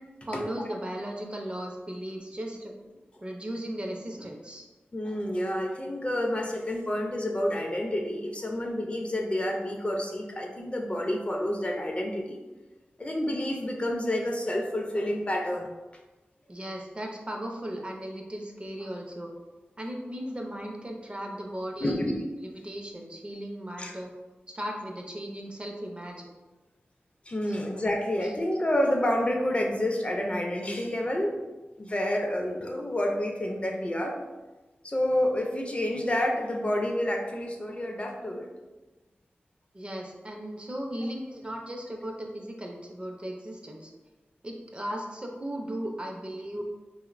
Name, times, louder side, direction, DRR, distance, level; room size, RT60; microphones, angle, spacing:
voice 1, 0.3-2.7 3.2-4.7 16.5-19.3 19.8-22.0 22.4-24.1 24.5-26.3 27.6-27.7 39.7-43.9 44.4-46.6, right 1 dB, 30° right, 1 dB, 0.4 m, -36 dB
voice 2, 4.9-12.4 13.0-15.7 21.8-22.2 23.8-23.9 27.3-31.3 31.8-34.2 34.8-38.5, left 1 dB, 30° left, 1 dB, 0.4 m, -29 dB
3.1 x 2.0 x 2.4 m, 1.2 s
cardioid pair, 50°, 4 cm